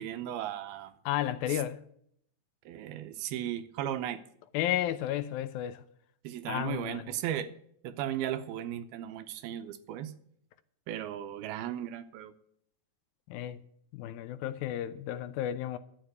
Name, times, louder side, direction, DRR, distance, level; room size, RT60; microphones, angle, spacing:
voice 1, 0.0-0.9 1.5-1.6 2.7-4.2 6.2-7.5 7.8-10.1 10.9-12.3, right 11 dB, 80° right, 2.6 m, -36 dB
voice 2, 1.1-1.8 4.5-5.8 6.5-7.0 13.3-13.6 13.9-15.8, left 12 dB, 80° left, 2.2 m, -32 dB
12.5 x 7.6 x 7.9 m
omnidirectional pair, 4.6 m